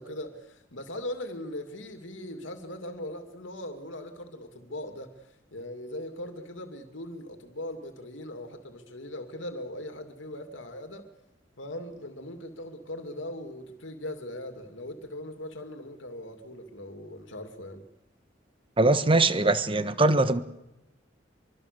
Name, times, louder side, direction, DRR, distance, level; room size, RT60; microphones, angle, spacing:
voice 1, 0.0-11.1 11.6-17.8, left 1 dB, 90° left, 2.6 m, -40 dB
voice 2, 18.8-20.4, right 2 dB, 30° right, 1.3 m, -22 dB
24.5 x 24.0 x 6.9 m
head